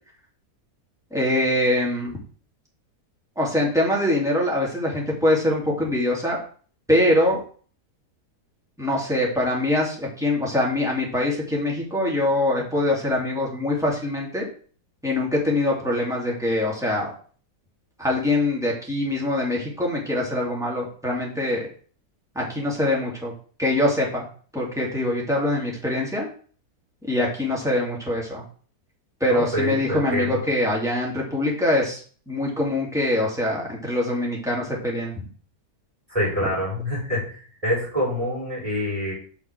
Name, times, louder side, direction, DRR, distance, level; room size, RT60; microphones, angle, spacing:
voice 1, 1.1-2.2 3.4-6.4 6.9-7.4 8.8-14.5 15.0-17.1 18.0-21.7 22.3-23.3 23.6-24.3 24.5-26.3 27.1-28.4 29.2-32.0 32.3-35.1, left 1 dB, ahead, -4 dB, 2.6 m, -23 dB
voice 2, 29.3-30.4 36.1-39.1, equal, 20° right, -5 dB, 4.5 m, -26 dB
5.9 x 5.9 x 6.4 m, 0.43 s
omnidirectional pair, 1.8 m